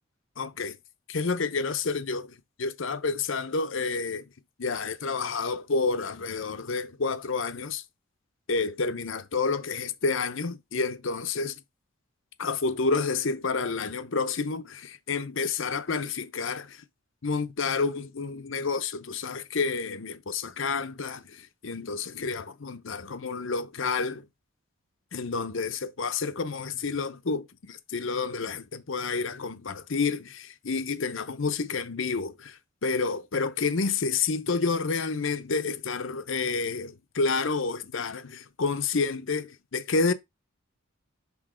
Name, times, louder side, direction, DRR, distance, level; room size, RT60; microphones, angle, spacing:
voice 1, 0.4-0.8 1.1-4.3 4.6-7.8 8.5-11.6 12.4-16.8 17.2-24.3 25.1-40.1, left 4 dB, 65° left, 0.7 m, -29 dB
6.1 x 3.4 x 5.0 m
head